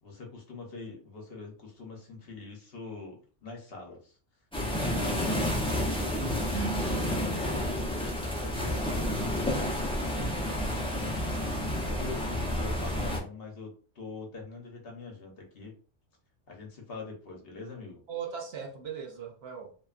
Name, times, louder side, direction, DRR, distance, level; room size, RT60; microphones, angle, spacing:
voice 1, 0.0-4.2 4.8-6.2 7.0-7.8 8.2-9.7 10.0-15.8 16.5-18.0, left 3 dB, 60° left, 0.9 m, -44 dB
sound 1, 4.5-13.2, left 1 dB, 10° left, 0.3 m, -30 dB
voice 2, 6.5-7.1 18.1-19.7, right 6 dB, 65° right, 0.8 m, -37 dB
2.8 x 2.2 x 2.3 m
omnidirectional pair, 1.2 m